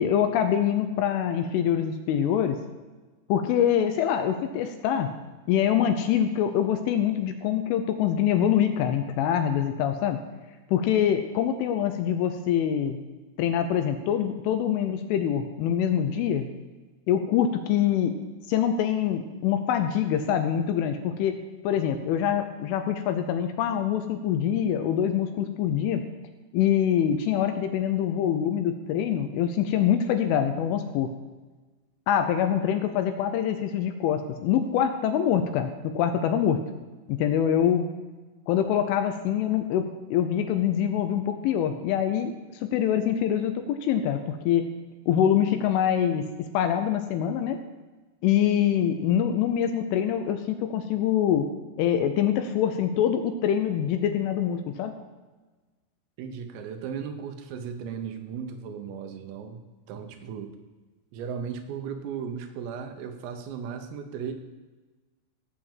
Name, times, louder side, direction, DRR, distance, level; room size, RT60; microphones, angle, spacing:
voice 1, 0.0-2.6 3.3-5.1 5.5-10.2 10.7-13.0 13.4-16.5 17.1-18.2 18.5-21.4 21.6-26.1 26.5-31.1 32.1-36.6 37.1-37.9 38.5-42.3 42.6-44.7 45.1-47.6 48.2-51.5 51.8-54.9, left 9 dB, 80° left, 7 dB, 3.1 m, -25 dB
voice 2, 56.2-59.6 59.9-60.6 61.1-64.3, right 7 dB, 85° right, 7 dB, 3.8 m, -36 dB
17.0 x 6.1 x 7.3 m, 1.3 s
omnidirectional pair, 5.9 m